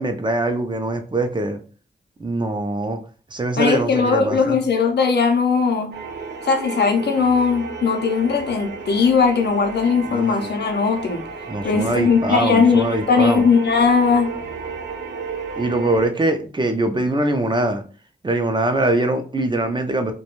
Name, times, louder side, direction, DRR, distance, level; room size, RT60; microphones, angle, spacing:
voice 1, 0.0-1.6 2.2-3.0 3.3-4.6 10.1-10.5 11.5-13.4 15.6-17.8 18.2-20.1, right 2 dB, 25° right, 0.5 m, -22 dB
voice 2, 3.6-5.9 6.4-11.2 11.6-14.3, left 5 dB, 70° left, 0.6 m, -18 dB
sound 1, 5.9-16.1, right 4 dB, 80° right, 0.5 m, -32 dB
2.3 x 2.2 x 3.0 m
cardioid pair, 65°, 18 cm